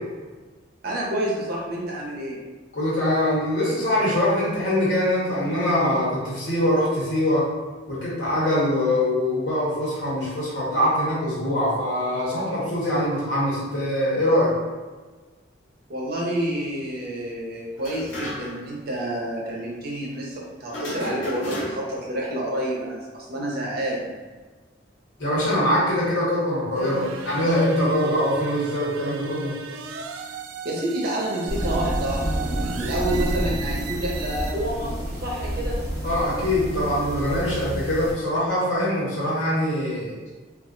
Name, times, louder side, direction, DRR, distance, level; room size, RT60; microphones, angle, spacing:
voice 1, 0.8-2.4 15.9-24.2 30.6-35.8, right 1 dB, 55° right, -3 dB, 0.7 m, -29 dB
voice 2, 2.7-7.5 7.9-14.5 25.2-29.5 36.0-40.2, left 1 dB, 70° left, -7 dB, 1.2 m, -23 dB
sound 1, 17.8-18.7 19.0-19.1 20.7-22.1, left 1 dB, 90° left, 0.9 m, -33 dB
sound 2, 26.7-34.5, right 6 dB, 85° right, 0.3 m, -37 dB
sound 3, 31.5-38.1, equal, 15° right, 0.8 m, -29 dB
2.5 x 2.0 x 3.8 m, 1.3 s
head